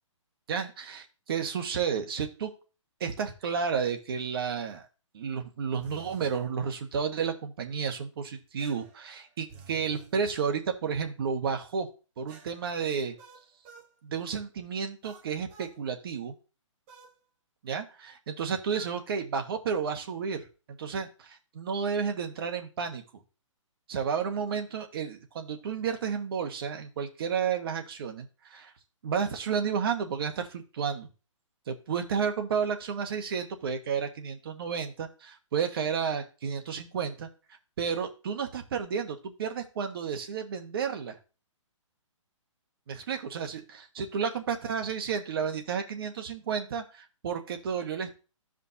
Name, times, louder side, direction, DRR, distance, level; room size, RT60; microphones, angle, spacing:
voice 1, 0.5-2.5 3.0-4.9 5.1-11.9 12.2-13.1 14.0-16.3 17.6-20.5 20.8-23.0 23.9-28.7 29.0-31.1 31.7-37.3 37.8-41.2 42.9-48.2, right 6 dB, 45° right, 5 dB, 1.3 m, -32 dB
sound 1, 5.8-6.5 8.6-10.1 12.3-13.9 15.0-15.8 16.9-17.2 18.7-19.0, right 6 dB, 20° right, 0.9 m, -51 dB
14.0 x 5.1 x 2.8 m, 0.34 s
hypercardioid pair, 160°, 17 cm